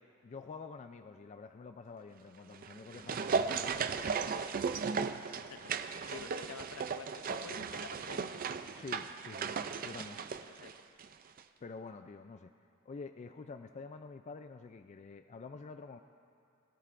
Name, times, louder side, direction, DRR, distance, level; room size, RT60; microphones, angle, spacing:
voice 1, 0.2-4.1 8.8-9.5 9.8-10.2 11.6-12.5 12.9-16.0, left 4 dB, 30° left, 8 dB, 0.3 m, -47 dB
sound 1, 2.5-11.1 11.4-11.5, right 5 dB, 40° right, 0.4 m, -36 dB
voice 2, 5.3-8.4 10.4-10.8, left 5 dB, 70° left, 9 dB, 0.7 m, -50 dB
22.5 x 13.5 x 2.5 m, 2.5 s
head